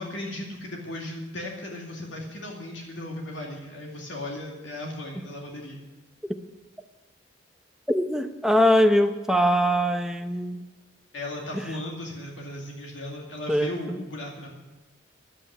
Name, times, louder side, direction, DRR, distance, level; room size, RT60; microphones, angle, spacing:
voice 1, 0.0-5.8 11.1-14.5, left 1 dB, 85° left, -1 dB, 2.4 m, -36 dB
voice 2, 7.9-10.6 11.5-11.6 13.5-14.0, equal, 5° right, 5 dB, 0.7 m, -22 dB
11.0 x 8.7 x 9.3 m, 1.1 s
head